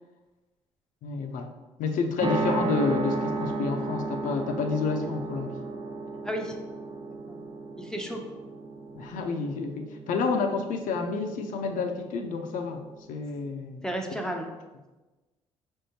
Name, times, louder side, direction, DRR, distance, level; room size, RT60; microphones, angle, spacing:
voice 1, 1.0-1.5 1.8-5.6 8.9-12.8 13.1-14.2, left 4 dB, 65° left, 5 dB, 0.6 m, -29 dB
sound 1, 2.2-13.1, right 3 dB, 40° right, 0.6 m, -34 dB
voice 2, 7.8-8.2 13.8-14.5, equal, 5° left, 2 dB, 0.6 m, -32 dB
5.1 x 3.5 x 2.8 m, 1.1 s
hypercardioid pair, 55°, 14 cm